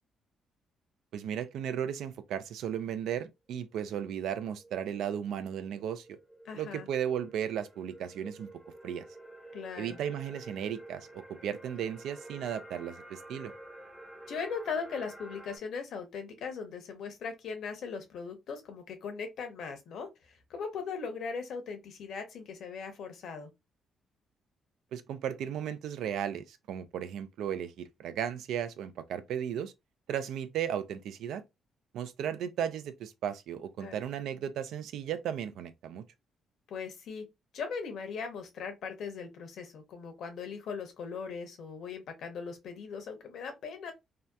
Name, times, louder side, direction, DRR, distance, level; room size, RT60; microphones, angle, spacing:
voice 1, 1.1-6.2 6.5-8.5 8.8-9.0 9.8-11.1 11.4-13.5 24.9-29.7 30.1-31.4 31.9-36.0, right 9 dB, 80° right, 0.3 m, -35 dB
sound 1, 3.7-15.6, right 1 dB, ahead, 0.7 m, -50 dB
voice 2, 6.4-6.9 9.5-10.0 14.3-23.5 33.8-34.0 36.7-37.2 37.5-43.9, left 5 dB, 70° left, 0.8 m, -39 dB
2.7 x 2.1 x 2.2 m
cardioid pair, 90°, 0 cm